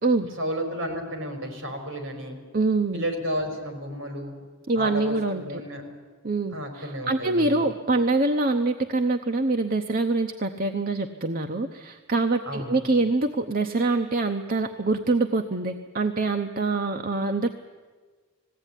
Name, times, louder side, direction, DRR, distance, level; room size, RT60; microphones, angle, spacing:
voice 1, 0.4-2.4 2.9-4.3 4.7-5.8 6.5-7.7 12.4-12.8, equal, 65° right, 4 dB, 5.0 m, -32 dB
voice 2, 2.5-3.1 4.7-5.6 6.2-17.5, right 3 dB, 40° right, 5 dB, 0.8 m, -25 dB
20.0 x 16.5 x 10.0 m, 1.4 s
head